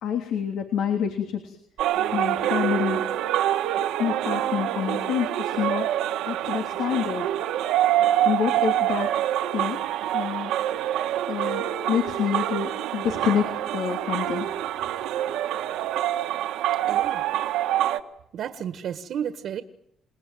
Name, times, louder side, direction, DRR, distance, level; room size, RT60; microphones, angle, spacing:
voice 1, 0.0-1.6 2.1-3.0 4.0-5.9 6.2-7.3 8.2-9.1 9.5-9.8 10.1-10.5 11.3-14.5, left 8 dB, 75° left, 5 dB, 3.2 m, -27 dB
sound 1, 1.8-18.0, right 12 dB, 85° right, 1.5 m, -26 dB
voice 2, 16.9-17.2 18.3-19.6, right 9 dB, 65° right, 11 dB, 1.6 m, -32 dB
28.5 x 19.5 x 9.2 m, 0.73 s
cardioid pair, 105°, 0 cm